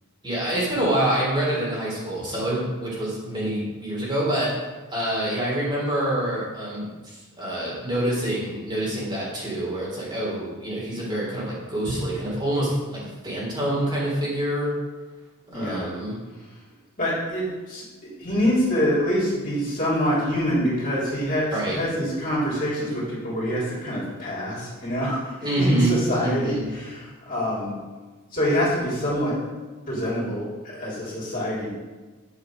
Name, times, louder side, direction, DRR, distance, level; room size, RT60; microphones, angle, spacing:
voice 1, 0.2-4.5 4.9-14.7 15.5-16.2 21.5-21.8 25.4-26.0 26.2-26.7, right 1 dB, 20° right, -6 dB, 3.5 m, -26 dB
voice 2, 15.5-15.9 17.0-17.8 18.2-27.7 28.3-29.3 29.9-31.7, equal, 40° left, -7 dB, 3.7 m, -25 dB
9.9 x 7.4 x 5.1 m, 1.3 s
head